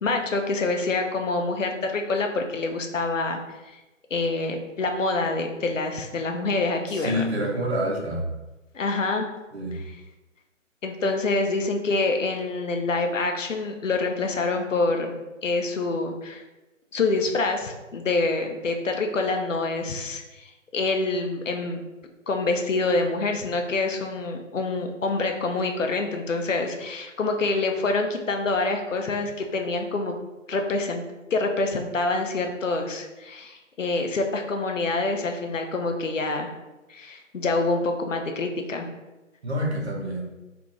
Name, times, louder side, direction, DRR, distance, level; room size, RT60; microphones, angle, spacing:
voice 1, 0.0-3.4 4.1-7.2 8.7-9.3 10.8-15.1 15.4-16.4 16.9-21.8 22.3-30.2 30.5-31.0 31.3-36.5 36.9-38.9, left 3 dB, 70° left, 4 dB, 0.6 m, -26 dB
voice 2, 6.9-8.3 9.5-9.8 39.4-40.2, equal, 55° right, -2 dB, 0.8 m, -27 dB
2.5 x 2.5 x 3.2 m, 1.1 s
figure-of-eight pair, 145°, 39 cm